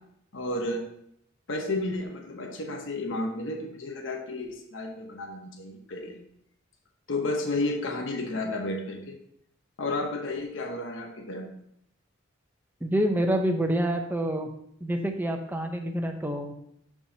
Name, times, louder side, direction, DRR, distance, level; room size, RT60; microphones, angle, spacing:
voice 1, 0.3-0.8 1.5-6.2 7.1-9.2 9.8-11.5, left 2 dB, 70° left, 2 dB, 1.0 m, -32 dB
voice 2, 12.8-14.5 14.8-16.5, right 1 dB, 10° right, 4 dB, 0.7 m, -27 dB
11.0 x 4.7 x 2.8 m, 0.72 s
head